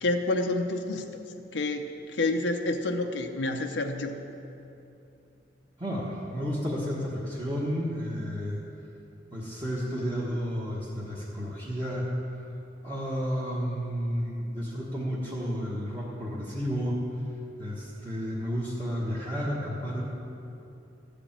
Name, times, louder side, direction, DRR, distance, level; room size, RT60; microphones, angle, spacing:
voice 1, 0.0-1.0 1.5-1.9 2.1-4.1, left 2 dB, 80° left, 4 dB, 0.7 m, -28 dB
voice 2, 5.8-8.6 9.3-12.1 12.8-17.0 17.6-20.0, equal, 25° right, -8 dB, 1.3 m, -32 dB
13.5 x 5.1 x 8.7 m, 2.8 s
head